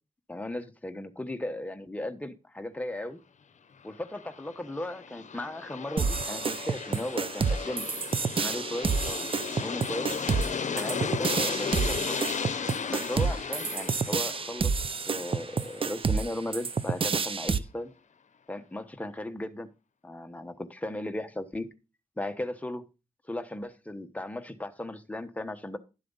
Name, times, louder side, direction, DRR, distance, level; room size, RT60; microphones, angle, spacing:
voice 1, 0.3-3.2 3.8-7.9 8.4-9.3 9.6-10.1 10.7-12.2 12.9-14.7 15.1-17.9 18.5-19.7 20.0-21.7 22.2-22.8 23.3-25.8, left 1 dB, 10° left, 7 dB, 1.1 m, -36 dB
Aircraft, 3.9-16.7, left 6 dB, 65° left, 0.8 m, -36 dB
sound 1, 6.0-17.6, right 5 dB, 45° right, 0.6 m, -29 dB
11.5 x 7.6 x 4.0 m, 0.29 s
wide cardioid pair, 120°, 13 cm